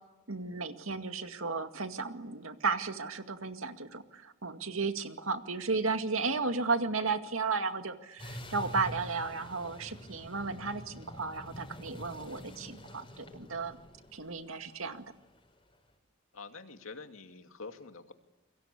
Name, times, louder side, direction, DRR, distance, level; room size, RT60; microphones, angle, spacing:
voice 1, 0.3-13.8 14.1-15.0, right 4 dB, 85° right, 7 dB, 2.2 m, -34 dB
sound 1, 8.2-15.5, equal, 25° left, 5.2 m, -46 dB
voice 2, 16.3-18.1, left 4 dB, 85° left, 6 dB, 2.4 m, -46 dB
29.5 x 23.5 x 8.4 m, 1.1 s
head